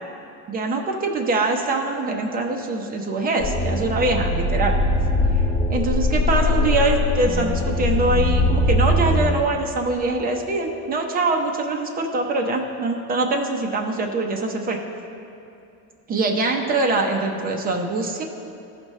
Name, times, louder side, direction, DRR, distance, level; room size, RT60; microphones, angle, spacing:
voice 1, 0.5-4.7 5.7-14.8 16.1-18.2, right 2 dB, 25° right, 2 dB, 0.7 m, -23 dB
sound 1, 3.4-9.3, left 2 dB, 25° left, 1.1 m, -21 dB
14.5 x 5.1 x 3.1 m, 2.7 s
cardioid pair, 170°, 35 cm